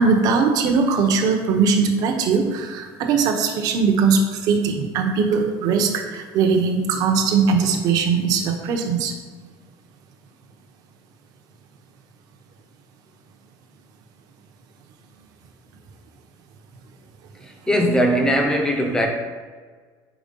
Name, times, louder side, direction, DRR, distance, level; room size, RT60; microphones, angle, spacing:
voice 1, 0.0-9.1, right 5 dB, 45° right, 3 dB, 0.8 m, -20 dB
voice 2, 17.4-19.1, equal, 5° left, 2 dB, 0.7 m, -20 dB
5.0 x 4.7 x 5.3 m, 1.5 s
cardioid pair, 180°, 9 cm